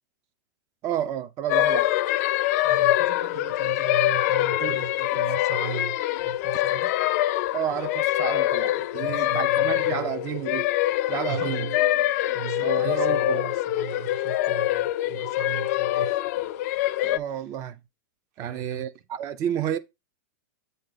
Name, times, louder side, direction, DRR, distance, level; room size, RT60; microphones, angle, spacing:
voice 1, 0.8-1.9 4.6-4.8 7.5-10.7 11.1-11.6 12.6-13.5 17.0-17.8 18.4-19.8, right 10 dB, 30° right, 0.6 m, -31 dB
sound 1, 1.5-17.2, left 15 dB, 55° left, 0.4 m, -24 dB
voice 2, 2.6-6.9 8.9-10.1 11.3-11.8 12.3-16.2 18.4-18.9, right 8 dB, 50° right, 1.1 m, -37 dB
8.2 x 3.9 x 4.0 m
supercardioid pair, 150°, 10 cm